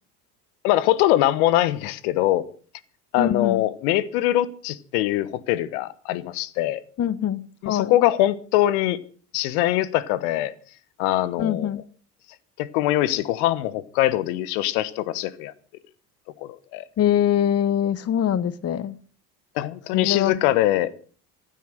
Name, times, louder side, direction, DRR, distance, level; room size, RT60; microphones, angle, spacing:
voice 1, 0.6-2.5 3.1-6.8 7.6-9.0 9.3-10.5 11.0-11.7 12.6-15.5 16.4-16.8 19.5-20.9, left 14 dB, 65° left, 1.3 m, -22 dB
voice 2, 3.2-3.7 7.0-7.9 11.4-11.8 17.0-19.0 19.9-20.5, left 10 dB, 30° left, 1.0 m, -23 dB
15.5 x 12.5 x 6.6 m
hypercardioid pair, 65°, 47 cm